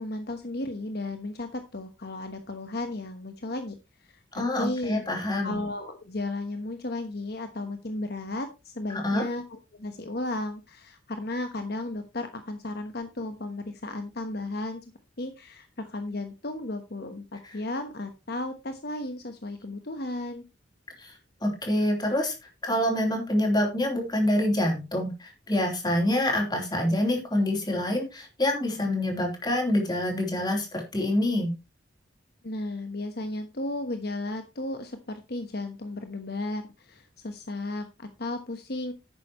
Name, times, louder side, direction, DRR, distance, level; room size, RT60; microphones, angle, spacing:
voice 1, 0.0-3.7 4.0-5.0 5.4-14.8 15.2-20.4 32.4-38.9, left 2 dB, 55° left, 7 dB, 1.1 m, -34 dB
voice 2, 4.3-5.6 8.9-9.2 17.5-17.6 21.0-22.3 22.6-31.5, left 1 dB, 25° left, 1 dB, 3.6 m, -26 dB
11.0 x 9.1 x 3.1 m, 0.26 s
head